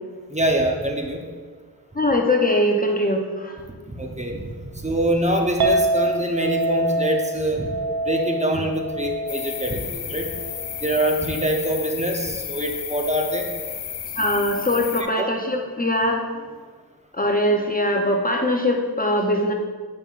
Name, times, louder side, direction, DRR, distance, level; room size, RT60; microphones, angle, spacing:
voice 1, 0.3-1.2 4.0-4.4 4.7-7.7 8.0-10.3 10.8-13.5 15.2-15.3, right 1 dB, 15° right, 1 dB, 0.8 m, -24 dB
voice 2, 1.9-3.6 14.2-16.5 17.1-19.5, left 1 dB, 20° left, 1 dB, 0.7 m, -22 dB
Chink clink, 5.6-11.9, right 2 dB, 70° right, 0.9 m, -26 dB
sound 1, 9.3-15.0, left 8 dB, 90° left, 0.6 m, -33 dB
9.0 x 5.4 x 2.5 m, 1.5 s
cardioid pair, 55°, 40 cm